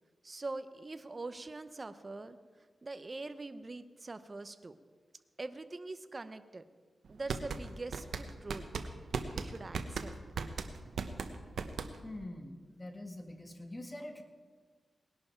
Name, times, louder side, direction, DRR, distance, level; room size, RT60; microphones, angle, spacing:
voice 1, 0.2-4.8 5.4-6.6 7.1-8.6 9.3-10.1, right 3 dB, 35° right, 11 dB, 0.8 m, -43 dB
sound 1, 7.1-12.2, right 5 dB, 85° right, 0.8 m, -38 dB
voice 2, 12.0-14.2, left 1 dB, 25° left, 5 dB, 1.7 m, -44 dB
19.0 x 11.0 x 4.6 m, 1.5 s
cardioid pair, 80°, 0 cm